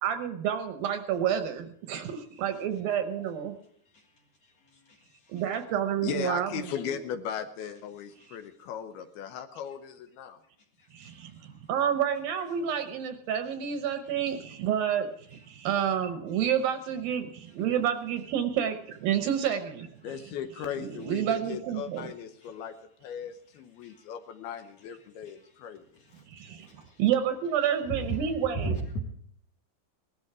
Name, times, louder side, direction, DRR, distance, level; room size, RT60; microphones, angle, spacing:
voice 1, 0.0-3.5 5.3-6.5 6.8-7.0 10.9-19.9 20.8-22.1 26.3-26.7 27.0-28.8, right 9 dB, 70° right, 8 dB, 2.4 m, -29 dB
voice 2, 6.0-10.4 20.0-22.8 23.0-25.8, left 8 dB, 75° left, 8 dB, 2.6 m, -37 dB
voice 3, 10.8-11.3 23.8-24.1 25.3-25.4 25.9-27.0 27.9-29.0, right 2 dB, 45° left, 2 dB, 2.5 m, -37 dB
18.5 x 13.5 x 4.8 m, 0.65 s
omnidirectional pair, 4.9 m